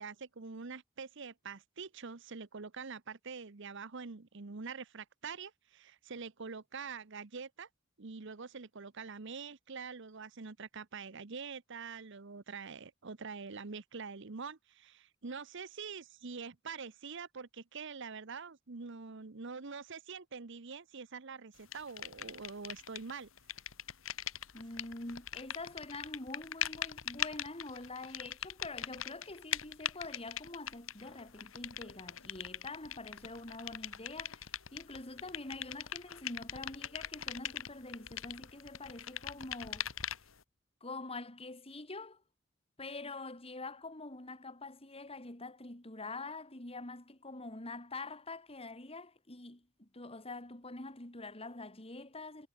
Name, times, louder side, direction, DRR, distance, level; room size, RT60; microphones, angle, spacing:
voice 1, 0.0-7.7 8.0-23.3, right 5 dB, 65° right, 1.0 m, -45 dB
sound 1, 21.7-23.1 23.4-40.4, left 10 dB, 85° left, 2.0 m, -41 dB
voice 2, 24.5-39.9 40.8-42.2 42.8-52.5, left 2 dB, 30° left, 3.4 m, -45 dB
head